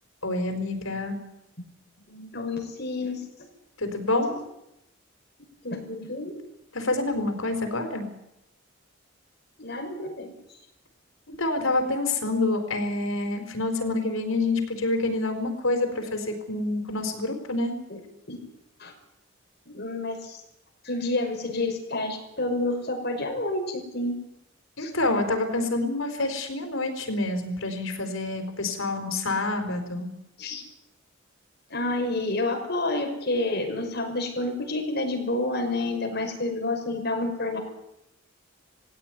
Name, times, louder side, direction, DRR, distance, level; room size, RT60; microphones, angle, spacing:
voice 1, 0.2-1.2 3.8-4.4 6.7-8.1 11.3-17.7 24.8-30.1, left 2 dB, 85° left, 6 dB, 4.8 m, -27 dB
voice 2, 2.1-3.2 4.3-4.4 5.6-6.3 9.6-10.3 17.9-18.0 18.3-18.4 18.8-18.9 19.7-20.4 20.8-24.1 24.8-24.9 30.4-30.6 31.7-37.6, left 2 dB, 50° left, 3 dB, 5.8 m, -29 dB
20.0 x 16.5 x 9.5 m, 0.85 s
head